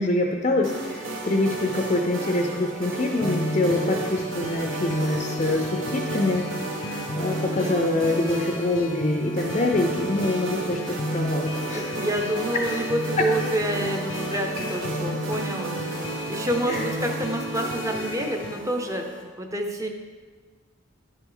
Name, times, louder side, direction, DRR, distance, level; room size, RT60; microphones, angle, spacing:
voice 1, 0.0-6.5 7.2-11.9 16.7-16.8, left 2 dB, 35° left, 2 dB, 0.5 m, -25 dB
sound 1, 0.6-19.2, right 2 dB, 80° right, 1.4 m, -33 dB
sound 2, 3.2-18.6, left 1 dB, 75° left, 0.8 m, -33 dB
voice 2, 11.7-15.8 16.3-19.9, right 1 dB, 15° right, 2 dB, 0.6 m, -28 dB
11.0 x 6.0 x 3.8 m, 1.5 s
head